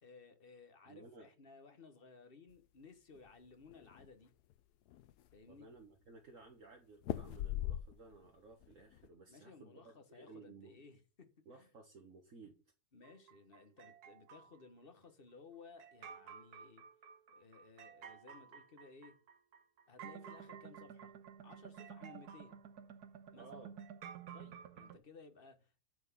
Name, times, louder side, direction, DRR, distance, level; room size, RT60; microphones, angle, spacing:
voice 1, 0.0-4.3 5.3-5.7 9.3-11.7 12.9-16.8 17.3-19.2 19.9-21.1 21.4-22.6 23.3-23.5 24.3-25.8, left 4 dB, 40° left, 1.4 m, -58 dB
voice 2, 0.9-1.3 5.5-10.8 11.4-12.5 23.4-23.7, right 4 dB, 55° right, 1.7 m, -57 dB
sound 1, 3.2-4.1 4.5-4.6 4.9-5.5 7.0-8.3 8.6-9.1, left 13 dB, 90° left, 1.2 m, -40 dB
sound 2, 13.0-14.6 15.8-25.0, right 7 dB, 75° right, 1.4 m, -53 dB
9.2 x 4.6 x 7.2 m
omnidirectional pair, 1.7 m